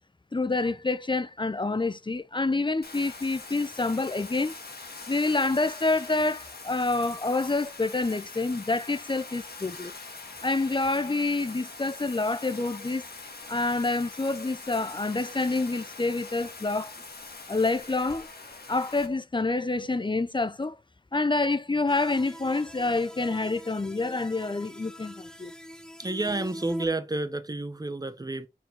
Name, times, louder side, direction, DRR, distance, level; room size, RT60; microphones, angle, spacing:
voice 1, 0.3-4.5 5.1-9.9 10.4-13.0 13.5-16.9 17.5-18.3 18.7-20.8 21.1-25.5, left 3 dB, 30° left, 0.5 m, -27 dB
Bathtub (filling or washing), 2.8-19.1, left 3 dB, 85° left, 1.5 m, -43 dB
sound 1, 21.9-26.9, equal, 5° left, 0.9 m, -43 dB
voice 2, 26.0-28.5, right 2 dB, 25° right, 0.8 m, -30 dB
6.0 x 4.6 x 4.2 m
wide cardioid pair, 60°, 16 cm